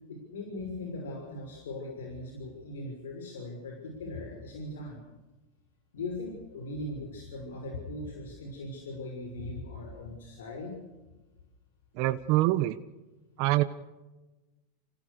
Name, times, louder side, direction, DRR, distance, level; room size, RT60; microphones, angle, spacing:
voice 1, 0.1-5.0 5.9-10.7, left 2 dB, 90° left, 2 dB, 6.0 m, -39 dB
voice 2, 11.9-12.8 13.4-13.6, right 17 dB, 55° right, 11 dB, 1.2 m, -25 dB
28.5 x 16.5 x 6.7 m, 1.1 s
hypercardioid pair, 115°, 0 cm